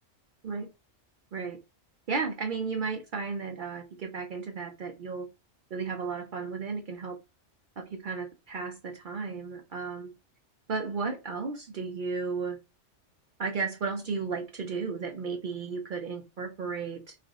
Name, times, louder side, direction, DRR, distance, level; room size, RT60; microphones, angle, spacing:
voice 1, 2.1-5.3 5.7-7.2 7.8-10.1 10.7-12.6 13.4-17.2, right 4 dB, 60° right, 2 dB, 0.5 m, -34 dB
2.5 x 2.4 x 3.8 m, 0.27 s
omnidirectional pair, 1.3 m